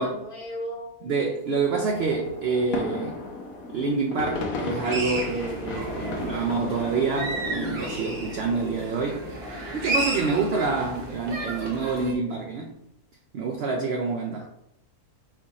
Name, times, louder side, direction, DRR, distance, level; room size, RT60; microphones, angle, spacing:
voice 1, 0.0-0.9 14.4-14.5, equal, 40° left, 1.0 m, -37 dB
voice 2, 1.0-3.2 3.7-9.3 9.7-12.7 13.3-14.5, right 4 dB, 80° right, 0.5 m, -27 dB
sound 1, 1.5-11.1, left 3 dB, 65° left, 1.2 m, -36 dB
sound 2, 4.7-12.1, right 2 dB, 50° right, 0.9 m, -33 dB
4.5 x 2.4 x 4.0 m
omnidirectional pair, 1.6 m